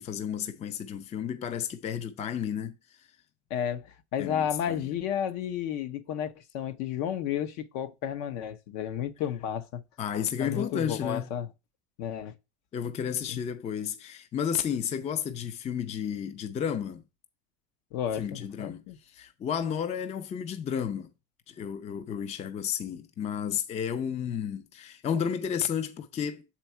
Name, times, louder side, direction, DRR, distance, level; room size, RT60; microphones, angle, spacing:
voice 1, 0.0-3.1 4.2-4.9 10.0-11.3 12.7-17.0 18.1-21.1 21.5-26.4, left 8 dB, 20° left, 0.5 m, -32 dB
voice 2, 3.5-9.8 10.4-11.5 12.0-12.3 13.3-13.4 17.9-19.0, left 9 dB, 60° left, 0.9 m, -32 dB
7.1 x 4.4 x 4.4 m
supercardioid pair, 145°, 33 cm